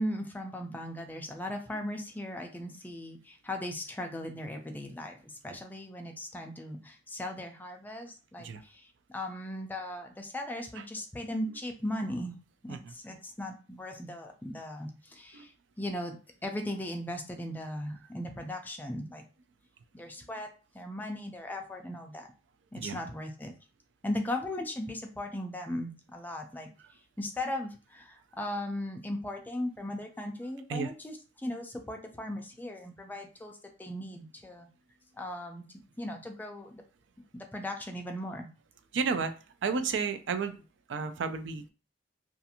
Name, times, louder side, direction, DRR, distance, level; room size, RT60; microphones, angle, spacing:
voice 1, 0.0-12.4 12.6-16.2 16.4-19.2 19.9-20.5 20.7-22.3 22.7-23.5 24.0-26.7 27.2-34.7 35.2-35.6 36.0-36.8 37.3-38.5, left 1 dB, 10° left, 3 dB, 0.4 m, -38 dB
voice 2, 38.9-39.3 39.6-40.6 40.9-41.7, right 5 dB, 85° right, 10 dB, 0.4 m, -31 dB
2.5 x 2.4 x 2.7 m, 0.35 s
head